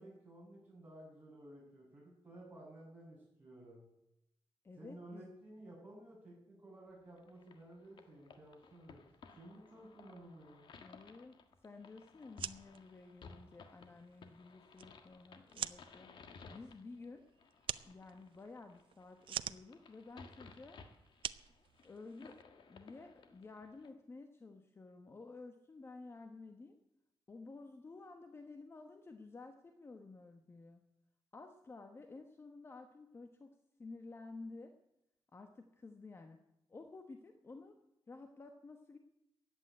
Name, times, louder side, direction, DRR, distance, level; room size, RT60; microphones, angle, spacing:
voice 1, 0.0-3.9 4.8-10.7, right 1 dB, 15° right, -10 dB, 7.5 m, -55 dB
voice 2, 4.6-5.3 10.8-16.1 16.5-17.2 17.8-20.8 21.8-26.8 27.3-30.8 31.3-33.5 33.8-34.7 35.3-36.4 36.7-37.7 38.1-39.0, left 3 dB, 30° left, 6 dB, 1.2 m, -53 dB
sound 1, 7.2-23.9, left 4 dB, 70° left, 1.6 m, -59 dB
sound 2, 12.2-22.4, right 10 dB, 90° right, 0.5 m, -47 dB
14.5 x 9.3 x 9.2 m, 0.84 s
wide cardioid pair, 150°, 9 cm